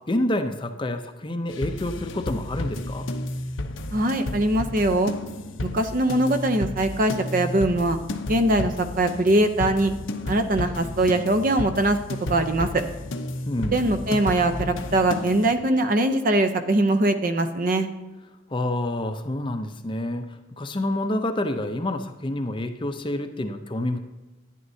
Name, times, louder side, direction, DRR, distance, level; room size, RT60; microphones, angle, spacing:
voice 1, 0.1-3.1 13.5-13.8 18.5-24.0, left 1 dB, 25° left, 7 dB, 0.6 m, -28 dB
sound 1, 1.5-15.5, left 1 dB, 75° left, 0.8 m, -32 dB
voice 2, 3.9-5.1 5.6-8.0 8.3-9.9 10.3-12.0 12.3-12.8 13.7-17.9, right 1 dB, 45° right, 8 dB, 0.7 m, -22 dB
11.0 x 10.0 x 2.7 m, 1.2 s
head